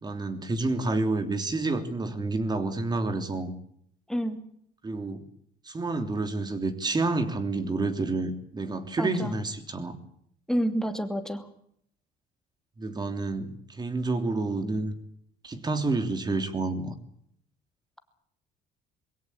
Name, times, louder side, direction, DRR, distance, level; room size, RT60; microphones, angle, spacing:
voice 1, 0.0-3.5 4.8-5.2 5.6-10.0 12.8-14.9 15.4-17.0, right 3 dB, 25° right, 9 dB, 3.2 m, -29 dB
voice 2, 4.1-4.4 9.0-9.4 10.5-11.5, equal, 5° left, 7 dB, 2.7 m, -29 dB
22.5 x 17.0 x 8.8 m, 0.68 s
cardioid pair, 110°, 17 cm